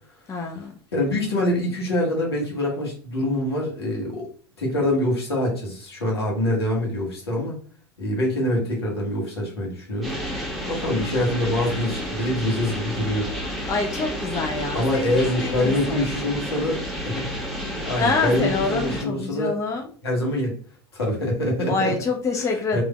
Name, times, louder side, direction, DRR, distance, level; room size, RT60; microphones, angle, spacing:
voice 1, 0.3-0.7 13.7-16.1 18.0-19.9 21.7-22.8, left 4 dB, 25° left, 3 dB, 0.5 m, -26 dB
voice 2, 0.9-4.2 4.6-7.6 8.0-10.2 10.7-13.2 14.7-17.3 17.8-19.5 20.0-20.5 20.9-21.9 22.4-22.8, left 1 dB, 75° left, -2 dB, 1.4 m, -25 dB
sound 1, 10.0-19.0, equal, ahead, 1.3 m, -31 dB
3.4 x 2.9 x 2.2 m, 0.43 s
figure-of-eight pair, 80°, 13 cm